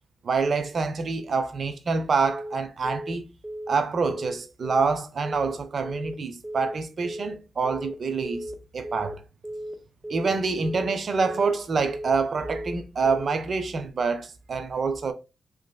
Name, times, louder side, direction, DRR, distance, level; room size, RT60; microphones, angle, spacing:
voice 1, 0.2-3.3 3.7-8.5 8.7-9.2 10.1-15.1, right 4 dB, 60° right, 0.4 m, -26 dB
Telephone, 2.2-2.5 2.8-3.1 3.4-3.7 4.0-4.3 4.6-4.9 5.2-5.5 5.8-6.1 6.4-6.7 7.0-7.3 7.6-7.9 8.2-8.5 8.8-9.1 9.4-9.7 10.0-10.3 10.6-10.9 11.2-11.5 11.8-12.1 12.4-12.7 13.0-13.3, right 1 dB, 15° right, 0.6 m, -35 dB
3.0 x 2.5 x 2.2 m
cardioid pair, 60°, 0 cm